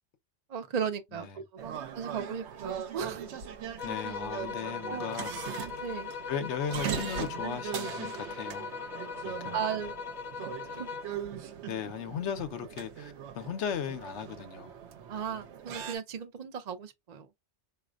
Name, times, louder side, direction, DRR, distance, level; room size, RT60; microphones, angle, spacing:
voice 1, 0.5-3.3 4.9-5.1 5.8-6.1 9.5-10.0 10.7-10.9 15.1-17.3, right 7 dB, 50° right, 0.5 m, -36 dB
sound 1, 1.6-16.0, right 8 dB, 75° right, 0.9 m, -40 dB
voice 2, 3.8-5.3 6.3-8.7 9.2-9.6 11.7-14.8, left 7 dB, 80° left, 0.9 m, -36 dB
sound 2, 3.8-11.2, left 6 dB, 45° left, 0.7 m, -40 dB
4.1 x 2.4 x 2.3 m
omnidirectional pair, 1.2 m